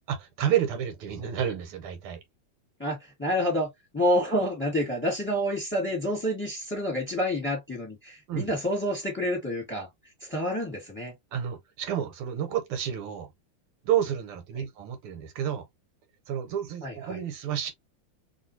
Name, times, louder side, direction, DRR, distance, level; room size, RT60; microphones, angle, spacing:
voice 1, 0.1-2.2 8.3-8.5 11.3-13.3 13.9-15.7 16.3-17.7, right 10 dB, 85° right, 1.7 m, -30 dB
voice 2, 2.8-3.7 3.9-9.9 10.2-11.1 16.8-17.2, equal, 5° left, 1.5 m, -28 dB
3.1 x 3.0 x 2.7 m
omnidirectional pair, 2.3 m